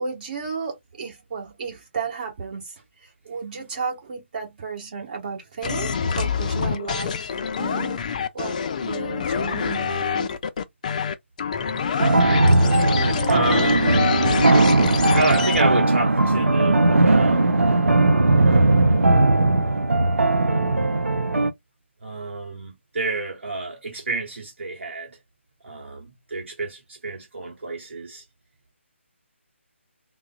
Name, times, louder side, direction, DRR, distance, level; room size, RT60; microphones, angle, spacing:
voice 1, 0.0-8.0 8.3-10.4, right 5 dB, 40° right, 1.4 m, -33 dB
sound 1, 5.6-15.6, left 6 dB, 35° left, 0.3 m, -26 dB
sound 2, 12.0-21.5, right 2 dB, 85° right, 0.5 m, -18 dB
voice 2, 12.3-14.4 15.1-17.5 22.0-25.2 25.6-28.2, right 2 dB, 65° right, 0.9 m, -29 dB
3.6 x 2.0 x 2.3 m
figure-of-eight pair, 150°, 7 cm